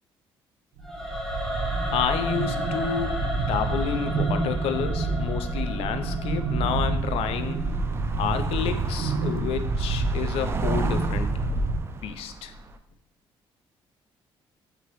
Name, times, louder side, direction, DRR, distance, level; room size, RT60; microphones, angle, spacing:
Singing / Musical instrument, 0.8-7.9, left 1 dB, 5° left, 0.8 m, -35 dB
sound 1, 0.8-11.8, right 3 dB, 85° right, 0.6 m, -28 dB
voice 1, 1.9-7.6 8.2-11.6 12.0-12.5, left 8 dB, 85° left, 10 dB, 0.4 m, -30 dB
sound 2, 4.0-4.1 4.3-12.8, right 3 dB, 25° right, 0.3 m, -37 dB
4.6 x 3.8 x 3.0 m, 0.78 s
cardioid pair, 115°, 10 cm